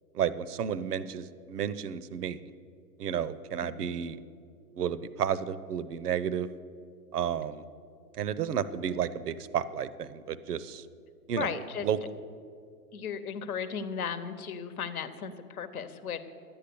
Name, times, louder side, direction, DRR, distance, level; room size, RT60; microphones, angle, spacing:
voice 1, 0.1-2.5 3.0-4.2 4.8-6.5 7.1-7.6 8.1-10.9 11.3-11.5 11.8-12.0, right 8 dB, 70° right, 16 dB, 0.7 m, -32 dB
voice 2, 3.6-4.0 11.4-11.9 12.9-16.2, left 7 dB, 60° left, 11 dB, 1.0 m, -36 dB
11.5 x 8.7 x 6.9 m, 2.4 s
hypercardioid pair, 135°, 48 cm